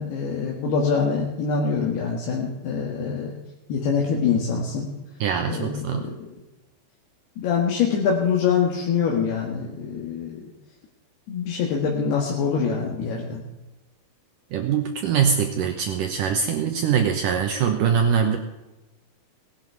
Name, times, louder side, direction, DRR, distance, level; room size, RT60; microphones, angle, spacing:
voice 1, 0.0-3.4 3.7-4.9 5.5-6.4 7.4-10.5 11.3-13.4, left 6 dB, 75° left, -1 dB, 3.6 m, -24 dB
voice 2, 5.2-6.0 14.5-18.4, right 7 dB, 70° right, 5 dB, 2.1 m, -23 dB
18.0 x 11.5 x 4.7 m, 1.0 s
omnidirectional pair, 4.8 m